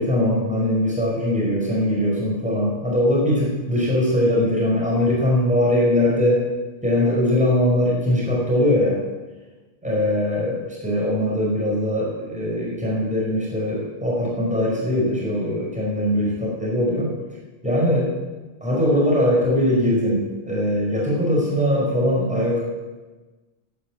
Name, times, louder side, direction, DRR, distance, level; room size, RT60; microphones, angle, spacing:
voice 1, 0.0-6.5 6.8-9.0 9.8-17.1 17.6-18.1 18.6-22.6, left 1 dB, 5° right, -4 dB, 5.0 m, -21 dB
16.0 x 9.7 x 7.4 m, 1.2 s
omnidirectional pair, 1.0 m